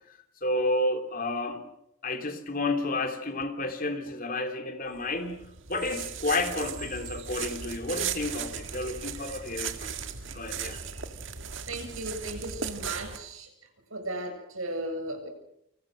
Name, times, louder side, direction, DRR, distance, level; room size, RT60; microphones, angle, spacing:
voice 1, 0.4-1.6 2.0-5.4 5.7-10.0 10.3-10.8, left 2 dB, 40° left, 6 dB, 3.2 m, -31 dB
sound 1, 5.0-13.2, right 7 dB, 60° right, 1.9 m, -37 dB
voice 2, 11.7-13.5 13.9-15.3, right 1 dB, 75° right, 5 dB, 7.7 m, -36 dB
29.0 x 27.5 x 6.4 m, 0.79 s
head